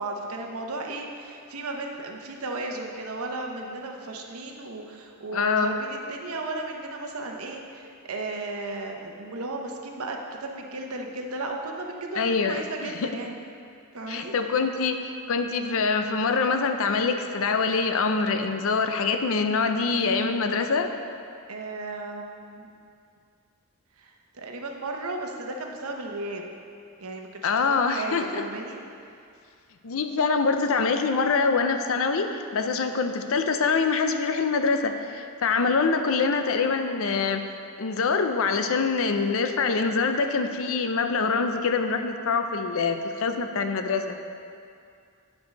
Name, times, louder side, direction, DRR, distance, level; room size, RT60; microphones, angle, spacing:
voice 1, 0.0-13.4 13.9-14.3 21.5-22.7 24.0-26.5 27.0-28.8, right 2 dB, 75° right, 2 dB, 0.9 m, -35 dB
voice 2, 5.3-5.7 12.2-13.1 14.1-20.9 27.4-28.4 29.8-37.4 37.8-44.2, left 4 dB, 65° left, 7 dB, 0.6 m, -25 dB
9.5 x 4.7 x 5.2 m, 2.4 s
head